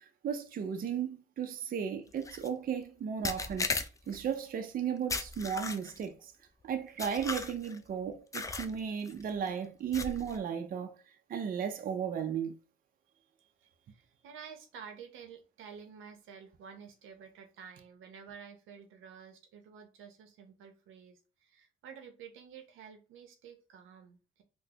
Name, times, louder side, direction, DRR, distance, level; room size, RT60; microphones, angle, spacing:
voice 1, 0.0-6.3 6.6-11.0 11.3-12.5, right 7 dB, 45° right, 0.5 m, -35 dB
sound 1, 2.2-2.5 3.2-4.2 5.1-6.1 7.0-7.8 8.3-8.7 9.1-9.3 9.9-10.4, left 3 dB, 15° left, 0.3 m, -36 dB
voice 2, 13.1-24.4, right 7 dB, 85° right, 0.7 m, -51 dB
3.9 x 2.1 x 2.8 m
cardioid pair, 90°, 20 cm